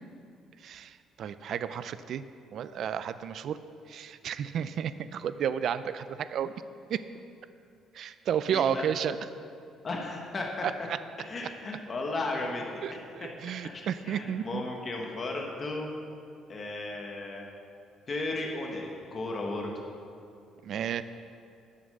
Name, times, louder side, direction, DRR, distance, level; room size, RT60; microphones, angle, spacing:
voice 1, 0.6-2.2 2.5-3.6 3.9-6.5 6.9-7.0 7.9-9.2 10.6-10.7 12.8-14.6 20.6-21.0, right 8 dB, 50° right, 13 dB, 0.4 m, -32 dB
voice 2, 8.5-8.9 9.8-10.7 11.2-15.9 16.5-17.5 18.1-19.7, left 2 dB, 25° left, 0 dB, 1.1 m, -35 dB
10.5 x 7.1 x 6.5 m, 2.5 s
cardioid pair, 165°, 0 cm